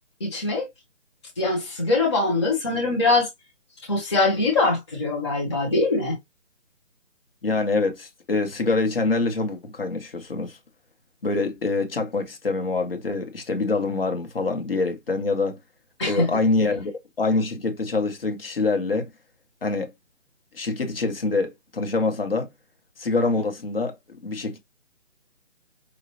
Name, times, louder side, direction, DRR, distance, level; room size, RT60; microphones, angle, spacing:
voice 1, 0.2-0.6 1.4-3.3 3.9-6.2 16.0-16.3, left 3 dB, 25° left, 1.2 m, -22 dB
voice 2, 7.4-10.6 11.2-15.6 16.1-16.9 17.2-19.1 19.6-19.9 20.5-22.5 23.0-23.9 24.2-24.6, left 3 dB, 50° left, 1.5 m, -25 dB
5.3 x 2.9 x 2.9 m
figure-of-eight pair, 165°, 37 cm